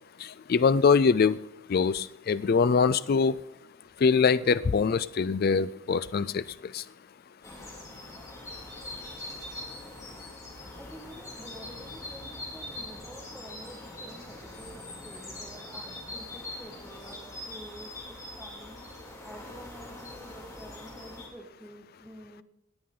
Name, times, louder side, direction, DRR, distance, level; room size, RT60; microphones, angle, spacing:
voice 1, 0.2-1.4 1.7-3.4 4.0-6.8, left 5 dB, 45° left, 15 dB, 0.4 m, -23 dB
sound 1, 7.4-21.3, left 1 dB, 15° left, 2.7 m, -43 dB
voice 2, 10.8-18.8 19.2-22.4, right 1 dB, 5° right, -2 dB, 1.5 m, -49 dB
18.0 x 9.4 x 3.8 m, 0.83 s
head